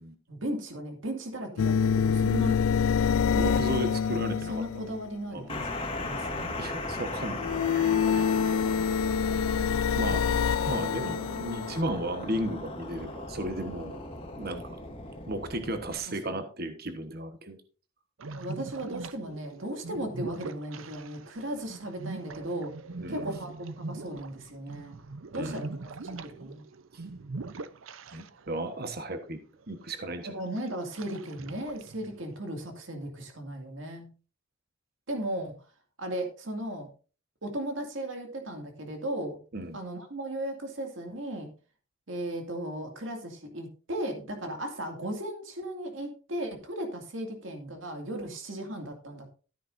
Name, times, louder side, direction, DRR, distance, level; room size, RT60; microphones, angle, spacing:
voice 1, 0.3-2.6 4.5-6.6 16.3-16.4 18.3-22.7 23.1-25.0 25.3-25.7 26.0-26.6 30.2-34.1 35.1-35.5 36.0-36.9 37.4-39.4 39.7-41.5 42.1-49.4, right 1 dB, 70° right, 4 dB, 2.3 m, -36 dB
sound 1, 1.6-5.1 7.4-11.8, left 7 dB, 85° left, 0.4 m, -26 dB
voice 2, 3.3-4.8 5.3-5.5 6.6-8.6 9.9-10.3 10.7-14.0 14.4-14.8 15.3-17.6 23.0-23.3 25.3-25.7 26.9-27.0 28.1-29.4 29.7-30.4 39.5-39.8, right 1 dB, 50° right, 8 dB, 1.2 m, -35 dB
sound 2, 5.5-16.0, left 2 dB, 25° left, 2.2 m, -37 dB
sound 3, 18.2-28.6 28.9-29.0 29.6-30.0 30.6-32.4, right 3 dB, 90° right, 0.7 m, -42 dB
13.5 x 9.5 x 2.6 m, 0.36 s
head